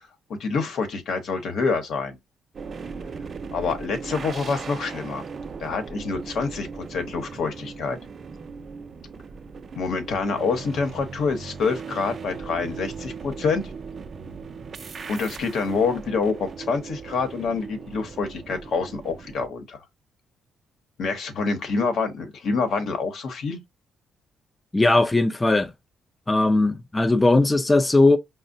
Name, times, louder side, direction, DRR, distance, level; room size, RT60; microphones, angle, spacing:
voice 1, 0.3-2.2 3.5-5.2 5.6-8.0 9.7-13.6 15.1-19.8 21.0-23.6, left 4 dB, 70° left, 0.9 m, -26 dB
sound 1, 2.5-19.5, right 5 dB, 45° right, 0.4 m, -38 dB
voice 2, 24.7-25.7 26.3-28.2, left 2 dB, 15° left, 0.4 m, -19 dB
5.2 x 2.1 x 2.6 m
cardioid pair, 90°, 0 cm